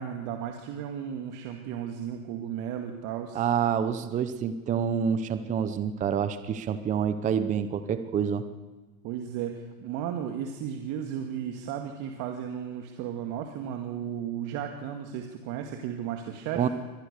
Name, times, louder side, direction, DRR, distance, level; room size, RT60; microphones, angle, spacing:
voice 1, 0.0-3.4 9.0-16.7, right 9 dB, 40° right, 4 dB, 2.0 m, -34 dB
voice 2, 3.3-8.4 16.5-16.7, right 8 dB, 15° right, 11 dB, 0.8 m, -27 dB
23.5 x 18.5 x 6.7 m, 1.3 s
supercardioid pair, 140°, 46 cm